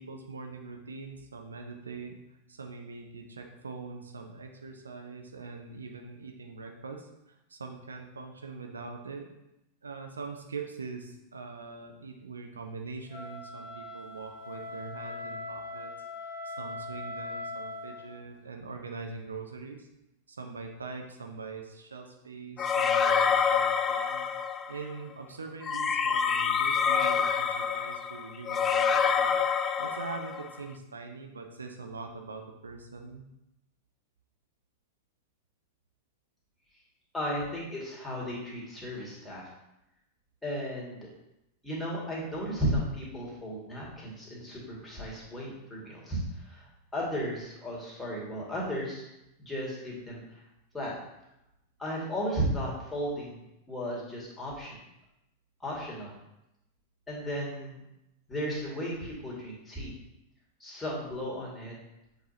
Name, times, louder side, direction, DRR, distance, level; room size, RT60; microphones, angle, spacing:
voice 1, 0.0-9.4 9.8-15.9 16.2-19.9 20.3-24.3 24.7-33.2, right 4 dB, 75° right, 4 dB, 0.6 m, -43 dB
Wind instrument woodwind instrument, 13.1-18.1, left 2 dB, 40° left, 2.1 m, -40 dB
sound 1, 22.6-24.8 25.6-30.5, left 6 dB, 25° left, 0.4 m, -27 dB
voice 2, 37.1-39.5 40.4-41.1 41.6-46.7 46.9-49.1 49.4-50.4 50.7-50.9 51.8-53.4 53.7-54.8 55.6-56.1 57.1-57.8 58.3-59.9 60.6-61.7, equal, 10° left, -5 dB, 2.2 m, -34 dB
7.7 x 4.9 x 2.8 m, 0.89 s
figure-of-eight pair, 90°, 0 cm